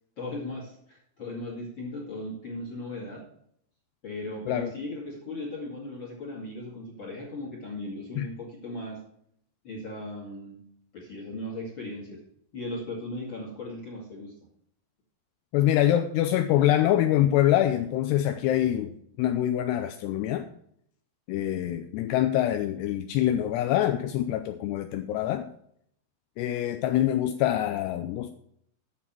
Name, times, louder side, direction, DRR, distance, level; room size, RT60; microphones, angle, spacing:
voice 1, 0.2-3.3 4.0-9.0 9.6-10.6 10.9-12.2 12.5-14.3, left 2 dB, 40° left, -1 dB, 2.1 m, -37 dB
voice 2, 15.5-20.4 21.3-25.5 26.4-28.3, left 12 dB, 80° left, 7 dB, 2.6 m, -25 dB
8.6 x 7.1 x 5.9 m, 0.69 s
omnidirectional pair, 4.9 m